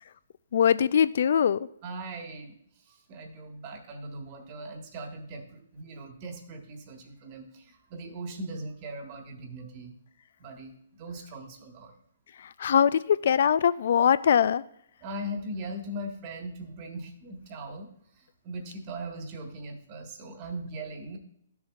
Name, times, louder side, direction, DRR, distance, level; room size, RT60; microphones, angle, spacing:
voice 1, 0.5-1.7 12.4-14.6, left 8 dB, 60° left, 17 dB, 0.3 m, -22 dB
voice 2, 1.8-9.9 10.4-12.0 15.0-17.9 18.1-21.2, right 1 dB, 35° right, 4 dB, 1.5 m, -40 dB
12.5 x 7.0 x 2.5 m, 0.71 s
hypercardioid pair, 140°, 0 cm